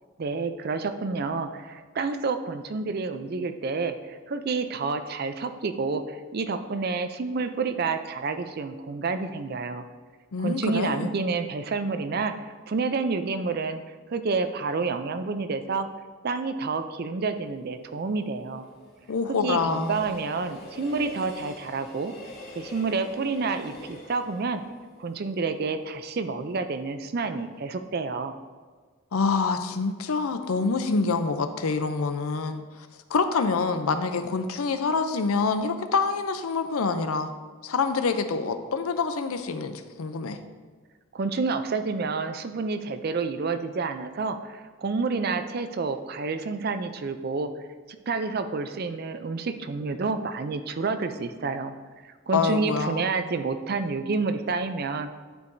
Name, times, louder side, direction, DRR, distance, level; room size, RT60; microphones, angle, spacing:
voice 1, 0.2-9.9 10.4-13.8 14.1-15.9 16.2-18.7 19.4-22.1 22.5-24.6 25.0-28.3 41.1-47.5 48.1-51.7 52.0-55.1, right 4 dB, 45° right, 9 dB, 0.4 m, -29 dB
voice 2, 10.3-11.1 19.1-20.0 29.1-37.3 37.6-40.4 52.3-53.1, left 4 dB, 90° left, 9 dB, 0.5 m, -26 dB
Train, 17.4-26.5 26.9-27.0, left 2 dB, 50° left, 2.1 m, -46 dB
11.5 x 4.7 x 2.7 m, 1.5 s
head